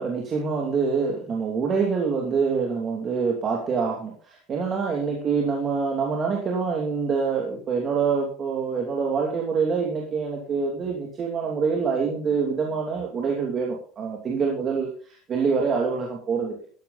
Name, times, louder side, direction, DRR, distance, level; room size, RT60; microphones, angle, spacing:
voice 1, 0.0-16.5, right 5 dB, 30° right, -1 dB, 2.7 m, -26 dB
13.5 x 11.5 x 4.1 m, 0.42 s
cardioid pair, 160°, 0 cm